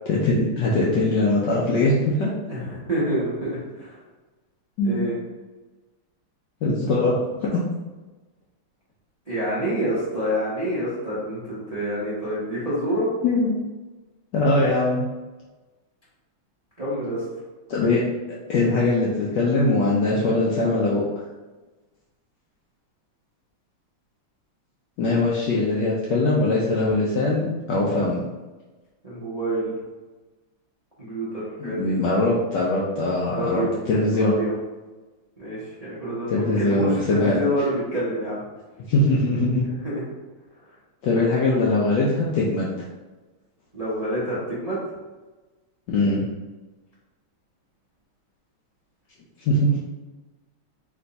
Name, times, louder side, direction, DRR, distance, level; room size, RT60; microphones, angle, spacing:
voice 1, 0.1-2.3 4.8-5.1 6.6-7.6 13.2-13.6 14.3-15.0 17.7-18.0 18.5-21.0 25.0-28.2 31.6-34.3 36.3-37.4 38.9-39.7 41.0-42.7 45.9-46.2 49.5-49.8, left 2 dB, 75° left, -5 dB, 1.0 m, -21 dB
voice 2, 2.5-4.0 4.8-5.1 9.3-13.1 16.8-17.2 29.0-29.7 31.0-31.9 33.3-33.7 34.2-34.5 35.4-38.4 39.7-40.0 43.7-44.8, equal, 35° right, -9 dB, 0.6 m, -27 dB
3.4 x 3.1 x 3.9 m, 1.2 s
omnidirectional pair, 2.4 m